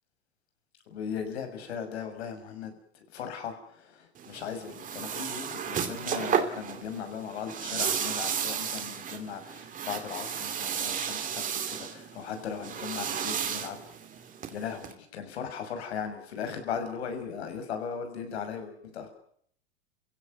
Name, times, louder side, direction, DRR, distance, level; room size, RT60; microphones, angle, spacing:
voice 1, 0.9-13.8 14.5-19.1, left 7 dB, 75° left, 7 dB, 6.7 m, -38 dB
sound 1, 4.2-14.9, right 8 dB, 25° right, 2.7 m, -33 dB
29.0 x 16.5 x 9.4 m, 0.66 s
hypercardioid pair, 120°, 33 cm